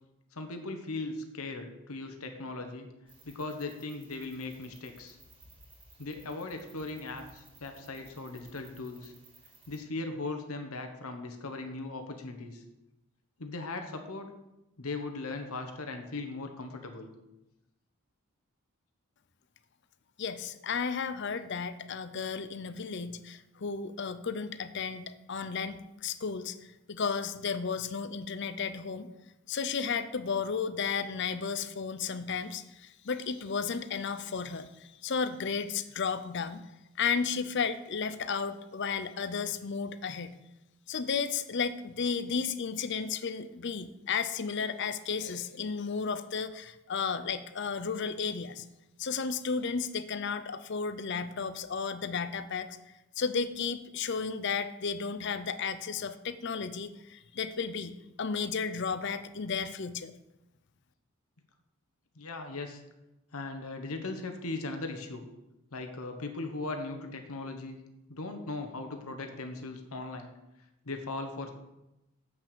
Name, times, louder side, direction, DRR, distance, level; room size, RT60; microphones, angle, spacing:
voice 1, 0.3-2.9 3.2-5.2 6.0-9.1 9.7-12.6 13.4-14.3 14.8-17.1 62.2-62.8 63.3-65.3 65.7-67.8 68.1-70.3 70.8-71.5, left 3 dB, 75° left, 6 dB, 1.1 m, -38 dB
sound 1, 3.1-9.8, right 2 dB, 25° right, 2.2 m, -58 dB
voice 2, 20.2-29.1 29.5-36.7 37.0-40.4 40.9-48.7 49.0-52.8 53.2-60.1, left 5 dB, 50° left, 12 dB, 0.6 m, -33 dB
7.9 x 6.0 x 6.8 m, 0.93 s
head